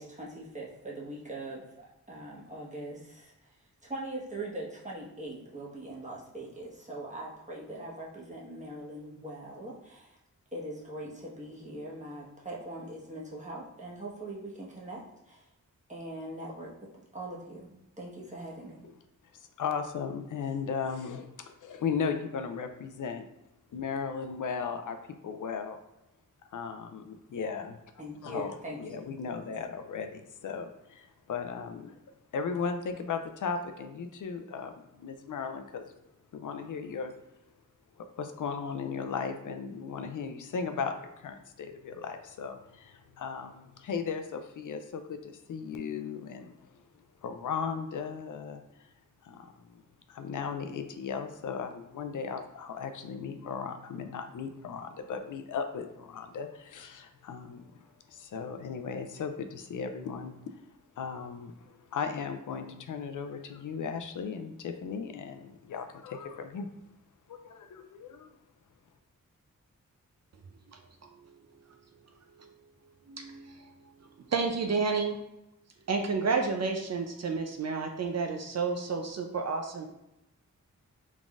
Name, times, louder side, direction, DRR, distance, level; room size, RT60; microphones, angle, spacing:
voice 1, 0.0-3.6 3.8-10.2 10.5-15.5 15.9-16.7 17.1-17.7 18.0-18.8 28.0-29.1, right 1 dB, 20° right, -4 dB, 1.2 m, -41 dB
voice 2, 19.4-23.2 23.7-25.0 25.2-25.8 26.5-27.8 28.2-31.9 32.3-35.9 36.3-37.1 38.0-46.5 47.2-48.6 49.2-49.8 50.1-60.6 61.0-66.7 67.3-68.3, left 6 dB, 70° left, 7 dB, 0.4 m, -36 dB
voice 3, 73.1-73.5 74.3-75.2 75.9-79.9, right 4 dB, 55° right, 4 dB, 0.5 m, -30 dB
3.8 x 3.6 x 2.4 m, 0.90 s
cardioid pair, 60°, 32 cm